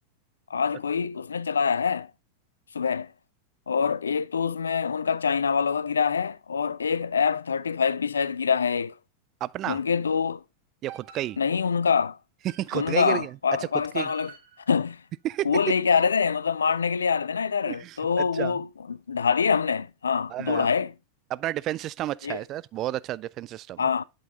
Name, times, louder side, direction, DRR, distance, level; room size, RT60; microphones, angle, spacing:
voice 1, 0.5-2.1 2.7-3.1 3.7-8.9 9.7-10.4 11.4-12.2 12.7-14.3 14.7-15.0 15.5-20.9 22.2-22.4 23.8-24.0, left 6 dB, 70° left, 0.3 m, -25 dB
voice 2, 9.4-9.8 10.8-11.4 12.4-13.4 13.7-14.1 15.2-15.7 17.7-18.6 20.3-20.7 21.3-23.8, right 14 dB, 35° right, 0.3 m, -31 dB
sound 1, 10.9-11.9 12.5-13.2 14.1-14.9 15.7-16.4, right 9 dB, 50° right, 1.4 m, -50 dB
10.5 x 3.9 x 3.7 m
figure-of-eight pair, 90°, 0 cm